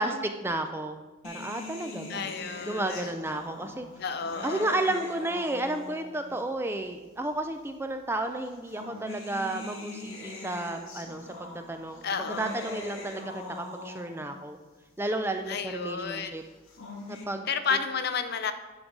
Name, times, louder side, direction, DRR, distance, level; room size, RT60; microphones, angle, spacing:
voice 1, 0.0-2.3 2.6-3.9 4.4-14.6 15.0-16.4 17.1-17.5, right 2 dB, 10° right, 6 dB, 0.4 m, -32 dB
sound 1, 1.2-6.3 7.3-7.4 8.4-14.3 16.5-17.2, left 2 dB, 80° left, 1.4 m, -42 dB
voice 2, 2.1-3.1 4.0-4.7 12.0-12.5 15.5-16.3 17.5-18.5, left 5 dB, 50° left, 10 dB, 0.5 m, -32 dB
9.8 x 3.9 x 5.9 m, 1.2 s
head